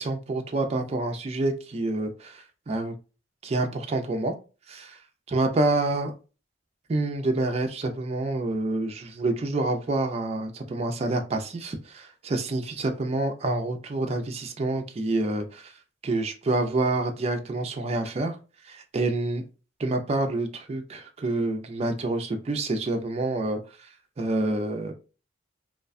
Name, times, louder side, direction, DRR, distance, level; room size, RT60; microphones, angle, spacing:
voice 1, 0.0-3.0 3.4-4.3 4.7-5.0 5.3-6.1 6.9-15.7 16.0-18.4 18.6-19.4 19.8-23.6 24.2-24.9, right 2 dB, 30° right, 5 dB, 0.3 m, -27 dB
2.3 x 2.2 x 2.5 m, 0.33 s
head